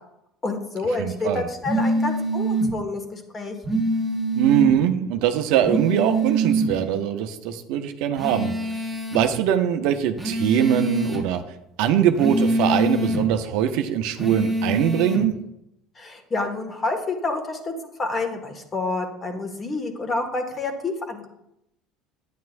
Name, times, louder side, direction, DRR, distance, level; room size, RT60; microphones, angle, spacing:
voice 1, 0.4-3.6 16.0-21.3, left 3 dB, 30° left, 4 dB, 1.8 m, -28 dB
voice 2, 1.0-1.5 4.3-8.5 9.1-11.4 11.8-15.3, right 9 dB, 70° right, 7 dB, 0.7 m, -22 dB
sound 1, 1.6-2.7 3.6-4.7 5.6-6.7 8.2-9.2 10.2-11.2 12.2-13.2 14.2-15.2, right 2 dB, ahead, 1.7 m, -24 dB
9.3 x 9.3 x 2.6 m, 0.81 s
hypercardioid pair, 80°, 0 cm